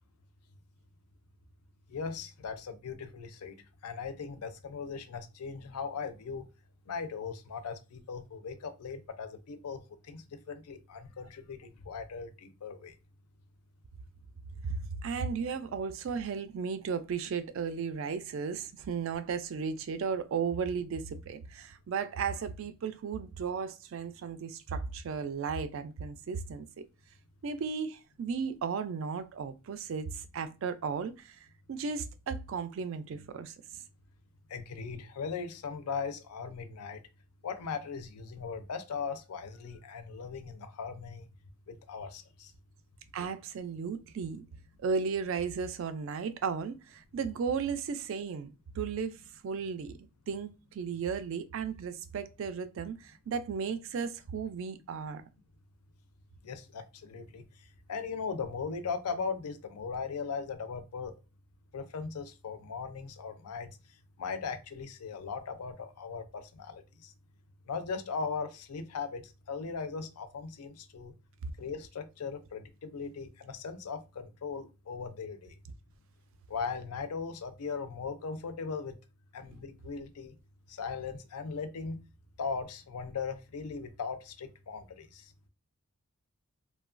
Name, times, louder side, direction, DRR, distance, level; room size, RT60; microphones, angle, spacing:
voice 1, 1.9-6.5 6.9-12.9 34.5-37.0 37.4-41.3 41.7-42.5 56.4-57.4 57.9-61.1 61.7-63.8 64.2-67.1 67.7-69.2 69.5-71.1 71.6-75.5 76.5-78.9 79.3-80.3 80.7-82.0 82.4-85.3, left 5 dB, 85° left, 0.5 m, -38 dB
voice 2, 14.6-26.9 27.4-33.5 43.1-44.4 44.8-49.2 49.4-55.2, right 5 dB, 60° right, 0.3 m, -35 dB
2.9 x 2.2 x 2.4 m
head